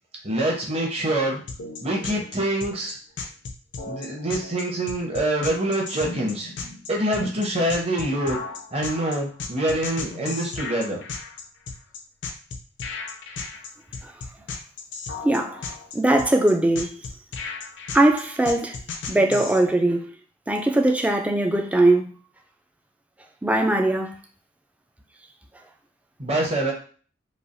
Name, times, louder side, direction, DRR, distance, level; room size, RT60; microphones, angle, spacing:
voice 1, 0.2-1.4 1.8-3.0 3.9-6.5 6.9-8.4 8.7-11.0 26.2-26.7, right 1 dB, 35° right, 0.8 m, -25 dB
sound 1, 1.5-19.6, left 4 dB, 70° left, 0.5 m, -35 dB
voice 2, 15.2-15.6 15.9-17.0 17.9-18.8 19.1-20.1 20.5-22.0 23.4-24.2, right 1 dB, 10° right, 0.3 m, -20 dB
3.2 x 2.3 x 2.5 m
head